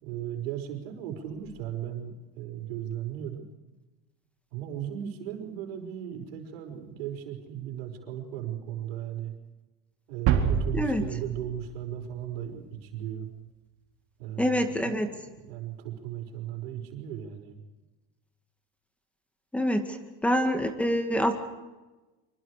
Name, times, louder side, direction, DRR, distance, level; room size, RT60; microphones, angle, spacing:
voice 1, 0.0-3.5 4.5-9.3 10.1-13.3 14.2-17.6, right 10 dB, 80° right, 4 dB, 5.5 m, -37 dB
sound 1, 10.3-12.3, right 8 dB, 50° right, 3.7 m, -27 dB
voice 2, 14.4-15.1 19.5-20.0 20.2-21.3, equal, 5° left, 6 dB, 2.0 m, -26 dB
25.5 x 25.0 x 5.0 m, 1.1 s
supercardioid pair, 140°, 30 cm